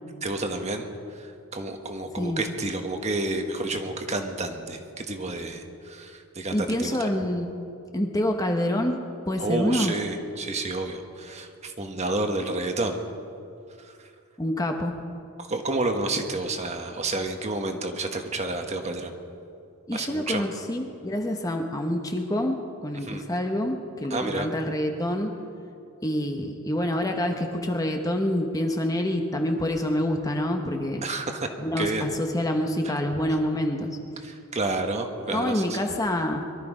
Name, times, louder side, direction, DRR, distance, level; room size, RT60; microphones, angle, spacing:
voice 1, 0.2-0.9 1.1-7.1 9.4-13.0 15.4-19.1 19.9-20.4 23.0-23.2 24.1-24.5 31.0-31.5 31.8-32.0 34.2-35.9, right 2 dB, 30° right, 5 dB, 1.3 m, -30 dB
voice 2, 2.2-2.5 6.5-7.5 7.9-9.0 9.3-9.9 14.4-15.0 19.9-25.3 26.0-31.1 31.6-33.9 35.2-36.5, left 1 dB, 15° left, 3 dB, 0.9 m, -27 dB
22.5 x 13.0 x 5.0 m, 2.5 s
head